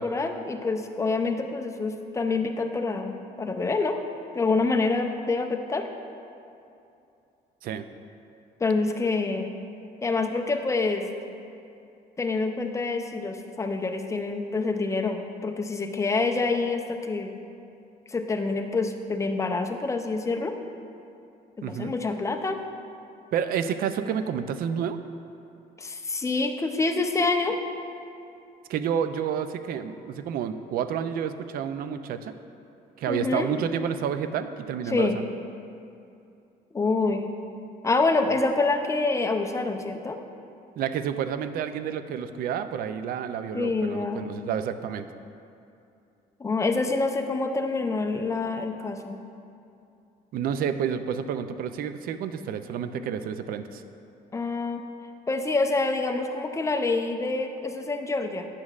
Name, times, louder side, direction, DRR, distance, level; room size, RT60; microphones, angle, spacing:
voice 1, 0.0-4.0 4.3-5.9 8.6-9.5 10.0-11.1 12.2-17.4 18.1-20.6 21.6-22.6 25.8-27.6 33.1-33.5 34.9-35.2 36.7-37.3 37.8-40.2 43.5-44.2 46.4-49.2 54.3-54.8 55.3-58.5, left 3 dB, 15° left, 5 dB, 0.4 m, -26 dB
voice 2, 21.6-21.9 23.3-25.0 28.7-32.3 33.0-35.2 40.8-45.1 50.3-53.8, right 8 dB, 60° right, 10 dB, 0.4 m, -29 dB
9.8 x 6.2 x 2.4 m, 2.6 s
cardioid pair, 110°, 17 cm